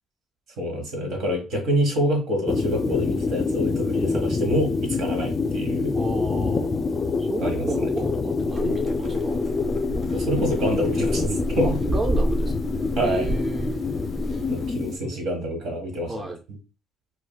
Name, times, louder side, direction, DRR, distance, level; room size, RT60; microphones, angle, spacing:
voice 1, 0.6-5.9 7.4-7.9 10.1-11.7 12.9-13.3 14.5-16.2, equal, 75° right, 3 dB, 1.3 m, -26 dB
sound 1, 2.5-15.0, left 4 dB, 35° left, 0.4 m, -26 dB
voice 2, 5.9-6.7 7.2-9.4 11.6-12.5 13.0-13.8 15.0-15.2 16.1-16.4, right 2 dB, 25° right, 3 dB, 0.5 m, -32 dB
sound 2, 8.5-14.7, right 1 dB, 45° right, 1.7 m, -30 dB
4.8 x 2.1 x 2.2 m, 0.33 s
supercardioid pair, 80°, 0 cm